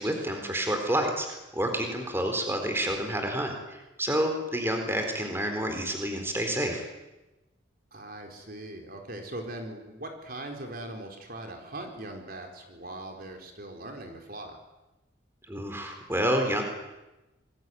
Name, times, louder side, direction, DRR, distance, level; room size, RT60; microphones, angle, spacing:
voice 1, 0.0-6.8 15.5-16.6, right 1 dB, 10° right, 4 dB, 4.2 m, -29 dB
voice 2, 7.9-14.6, right 1 dB, 50° right, 3 dB, 4.4 m, -40 dB
27.0 x 21.5 x 9.5 m, 1.0 s
head